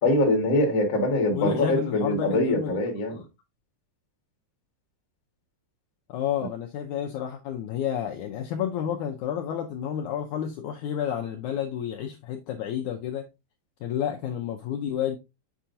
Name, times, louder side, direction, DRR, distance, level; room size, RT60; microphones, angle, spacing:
voice 1, 0.0-3.1, left 1 dB, 40° left, 1.2 m, -23 dB
voice 2, 1.3-2.8 3.1-3.2 6.1-13.2 13.8-15.2, left 9 dB, 80° left, 1.8 m, -30 dB
7.2 x 5.6 x 2.6 m
omnidirectional pair, 4.1 m